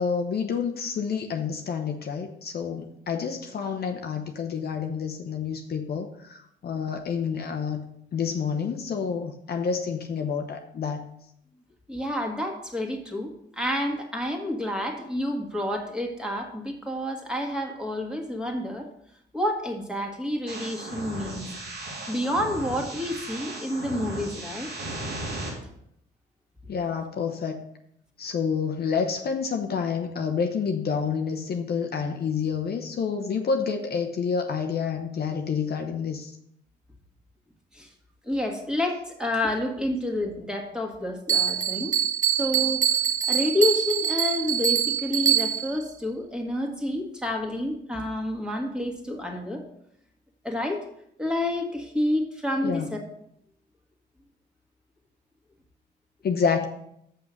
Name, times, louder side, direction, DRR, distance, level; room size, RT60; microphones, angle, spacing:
voice 1, 0.0-7.8 8.1-11.1 26.7-27.6 28.2-36.4 52.6-52.9 56.2-56.7, left 6 dB, 50° left, 5 dB, 0.8 m, -28 dB
voice 2, 11.9-18.9 19.3-21.4 22.1-24.7 37.7-37.9 38.3-41.9 42.4-42.9 43.3-49.6 50.4-50.8 51.2-53.0, left 1 dB, 5° right, 1 dB, 1.9 m, -29 dB
sound 1, 20.5-25.5, right 1 dB, 90° right, 3.0 m, -36 dB
Bell, 41.3-45.8, right 9 dB, 40° right, 1.3 m, -24 dB
6.7 x 6.1 x 6.4 m, 0.73 s
cardioid pair, 90°, 20 cm